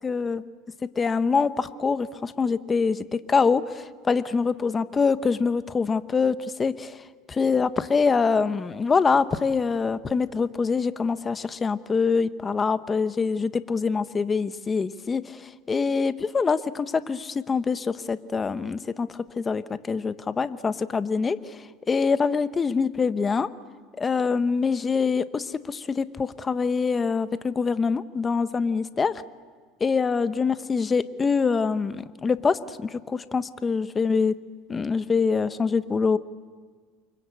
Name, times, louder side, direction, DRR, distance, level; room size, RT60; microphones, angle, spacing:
voice 1, 0.0-0.4 1.0-7.0 7.3-19.1 19.4-23.5 24.0-29.1 29.8-34.3 34.7-36.2, left 5 dB, 20° left, 13 dB, 1.1 m, -25 dB
28.5 x 24.0 x 8.4 m, 1.6 s
supercardioid pair, 115°, 0 cm